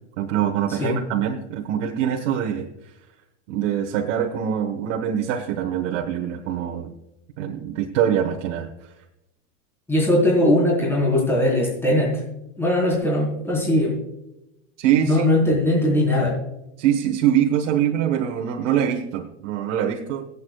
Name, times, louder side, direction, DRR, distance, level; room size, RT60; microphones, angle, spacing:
voice 1, 0.2-2.7 3.5-6.9 7.4-8.7 14.8-15.3 16.8-20.2, right 10 dB, 80° right, 1 dB, 1.4 m, -23 dB
voice 2, 9.9-12.2 12.6-14.0 15.0-16.4, left 1 dB, 5° left, -4 dB, 4.2 m, -20 dB
25.0 x 8.5 x 2.4 m, 0.89 s
supercardioid pair, 135°, 37 cm